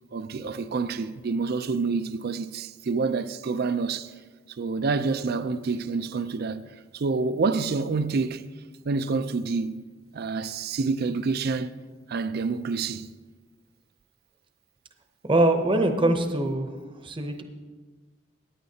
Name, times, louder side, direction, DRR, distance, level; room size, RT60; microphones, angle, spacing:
voice 1, 0.1-4.1 4.6-8.4 8.8-9.8 10.1-11.7 12.1-13.1, right 4 dB, 55° right, 0.4 m, -28 dB
voice 2, 15.2-16.7 17.0-17.4, right 1 dB, 25° right, 0.7 m, -23 dB
16.0 x 9.3 x 2.8 m
head